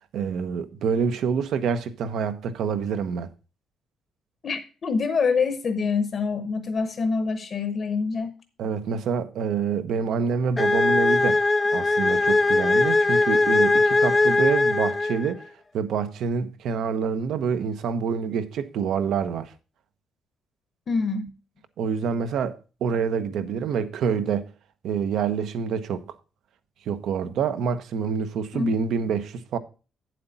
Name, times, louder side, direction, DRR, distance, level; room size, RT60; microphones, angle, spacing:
voice 1, 0.1-3.3 8.6-11.5 11.7-15.4 15.7-19.5 21.8-24.5 24.8-26.0 26.9-29.6, right 6 dB, 65° right, 0.9 m, -27 dB
voice 2, 4.4-8.3 20.9-21.3 28.5-28.7, left 5 dB, 35° left, 0.9 m, -25 dB
sound 1, 10.6-15.4, left 3 dB, 15° left, 0.4 m, -20 dB
9.0 x 7.8 x 4.1 m
cardioid pair, 170°, 0 cm